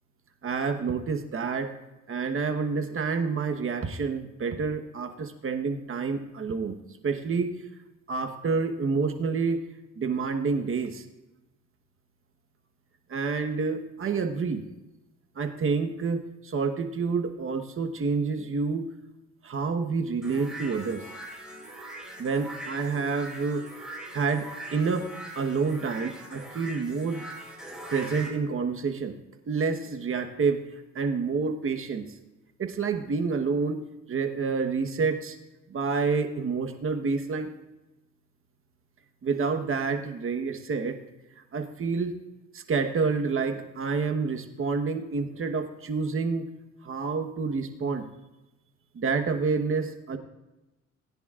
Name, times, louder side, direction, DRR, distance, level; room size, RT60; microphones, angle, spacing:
voice 1, 0.4-1.7 2.1-6.8 7.0-7.5 8.1-9.6 10.0-11.0 13.1-14.6 15.4-18.8 19.4-21.0 22.2-23.6 24.1-25.1 25.3-27.3 27.9-29.1 29.5-30.6 30.9-32.0 32.6-35.4 35.7-37.5 39.2-41.0 41.5-42.2 42.5-46.5 46.8-48.0 48.9-50.2, right 4 dB, 45° right, 5 dB, 1.2 m, -28 dB
sound 1, 20.2-28.3, right 1 dB, ahead, 4.2 m, -41 dB
20.0 x 10.0 x 2.5 m, 1.0 s
cardioid pair, 90°, 30 cm